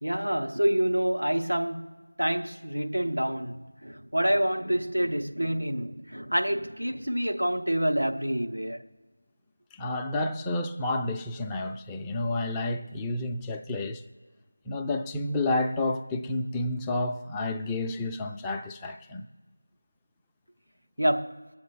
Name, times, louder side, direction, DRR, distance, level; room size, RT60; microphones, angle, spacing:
voice 1, 0.0-1.9 2.2-8.8 21.0-21.4, right 1 dB, 85° right, 1.1 m, -27 dB
voice 2, 9.7-14.0 14.7-19.2, left 2 dB, 5° left, 0.4 m, -30 dB
22.5 x 8.2 x 3.5 m
figure-of-eight pair, 165°, 0 cm